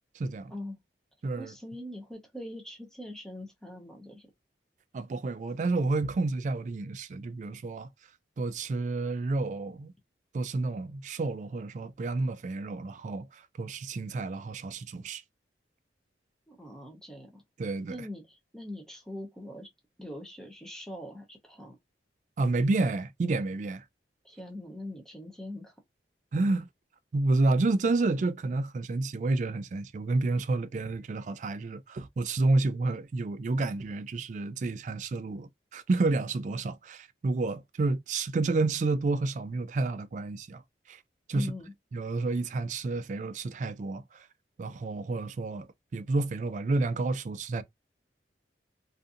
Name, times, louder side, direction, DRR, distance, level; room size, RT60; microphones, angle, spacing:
voice 1, 0.1-0.5 1.2-1.5 4.9-7.9 8.4-9.9 10.3-15.2 17.6-18.0 22.4-23.8 26.3-26.7 27.1-40.6 40.9-41.0 41.3-41.5 41.9-44.3 44.6-47.6, right 3 dB, 45° right, 0.3 m, -30 dB
voice 2, 1.4-4.3 16.5-17.4 17.9-19.7 20.0-21.8 24.2-25.7 41.3-41.7, left 1 dB, 5° left, 0.6 m, -42 dB
2.5 x 2.5 x 2.4 m
head